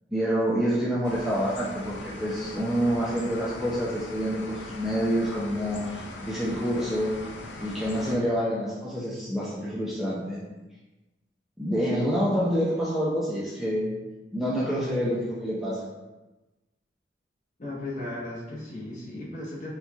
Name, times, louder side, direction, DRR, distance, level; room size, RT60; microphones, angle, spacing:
voice 1, 0.1-7.1 7.6-10.4 11.6-13.9 14.3-15.9, equal, ahead, -7 dB, 0.4 m, -27 dB
sound 1, 1.0-8.2, left 2 dB, 75° left, 0.5 m, -40 dB
voice 2, 17.6-19.7, left 2 dB, 45° left, -5 dB, 0.9 m, -36 dB
4.4 x 2.3 x 2.7 m, 1.1 s
head